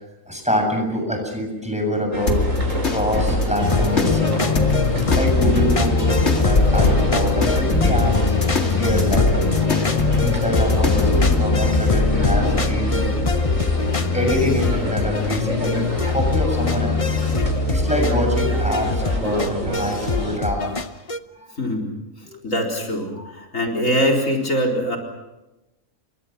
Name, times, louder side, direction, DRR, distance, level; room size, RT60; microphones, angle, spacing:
voice 1, 0.3-2.5 2.8-4.6 5.1-8.3 8.6-9.7 10.2-13.2 13.9-17.0 17.7-20.7 21.4-21.5 23.2-23.3, equal, 5° right, 2 dB, 7.4 m, -25 dB
sound 1, 2.1-20.4, right 1 dB, 75° right, 5.9 m, -28 dB
sound 2, 2.3-11.4, left 3 dB, 55° left, 2.6 m, -24 dB
sound 3, 3.6-21.2, left 4 dB, 30° left, 0.9 m, -21 dB
voice 2, 21.6-21.9 22.4-25.0, equal, 75° left, 4 dB, 4.7 m, -22 dB
30.0 x 24.0 x 6.0 m, 0.99 s
omnidirectional pair, 1.4 m